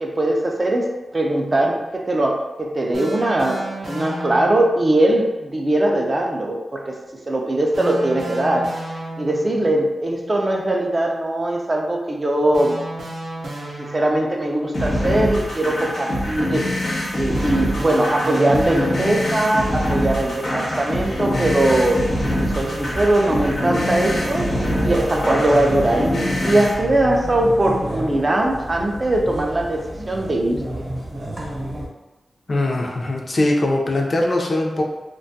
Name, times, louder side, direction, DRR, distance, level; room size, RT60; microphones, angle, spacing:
voice 1, 0.0-7.0 7.3-8.9 9.2-12.8 13.8-16.7 17.2-22.1 22.4-30.9, right 1 dB, 30° right, 1 dB, 0.3 m, -21 dB
sound 1, 2.9-4.8 7.7-9.6 12.5-14.5 17.3-19.5, right 1 dB, 85° right, 0.5 m, -32 dB
sound 2, 14.7-26.7, left 1 dB, 80° left, 0.9 m, -24 dB
sound 3, 21.3-31.9, equal, 50° right, 0.8 m, -30 dB
voice 2, 32.5-34.8, left 1 dB, 45° left, -1 dB, 0.4 m, -21 dB
2.5 x 2.2 x 2.6 m, 1.1 s
wide cardioid pair, 120°, 0 cm